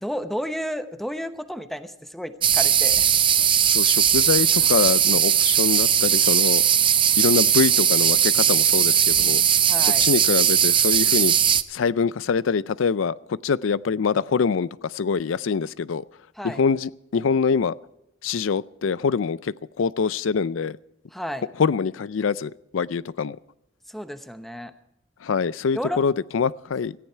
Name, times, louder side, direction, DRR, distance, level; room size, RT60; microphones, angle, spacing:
voice 1, 0.0-3.1 9.7-10.1 16.4-16.6 21.1-21.5 23.9-24.7 25.7-26.0, equal, ahead, 9 dB, 0.9 m, -32 dB
sound 1, 2.4-11.6, right 9 dB, 25° right, 0.5 m, -19 dB
voice 2, 3.6-6.6 7.2-9.4 10.0-11.3 11.7-16.0 16.4-17.7 18.2-20.8 21.6-23.4 25.2-27.1, left 5 dB, 75° left, 19 dB, 0.4 m, -24 dB
16.5 x 14.5 x 4.5 m, 0.85 s
head